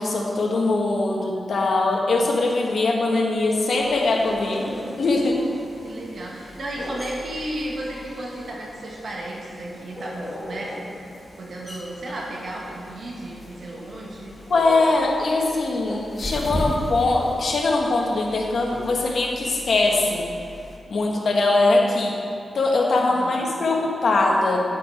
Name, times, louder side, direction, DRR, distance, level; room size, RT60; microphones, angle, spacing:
voice 1, 0.0-5.4 14.5-20.3 20.9-22.2 22.5-24.6, left 2 dB, 65° left, -1 dB, 1.6 m, -21 dB
sound 1, 3.8-20.8, left 1 dB, 15° left, 1.8 m, -37 dB
voice 2, 5.8-10.7 11.4-14.3 23.1-23.4, right 1 dB, 60° right, -3 dB, 2.2 m, -33 dB
9.7 x 9.6 x 4.5 m, 2.5 s
cardioid pair, 90°, 0 cm